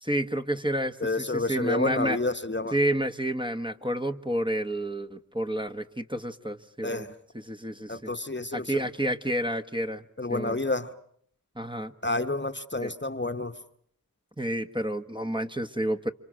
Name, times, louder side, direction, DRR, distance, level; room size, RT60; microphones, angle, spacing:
voice 1, 0.0-2.2 2.7-7.0 7.5-8.1 8.5-10.0 10.3-10.6 11.6-11.9 12.8-12.9 14.4-16.1, right 1 dB, 15° right, 6 dB, 1.4 m, -29 dB
voice 2, 1.0-2.8 6.8-7.1 7.9-8.9 10.2-10.9 12.0-13.6, left 2 dB, 30° left, 9 dB, 1.2 m, -29 dB
29.5 x 25.5 x 6.3 m, 0.65 s
wide cardioid pair, 40°, 34 cm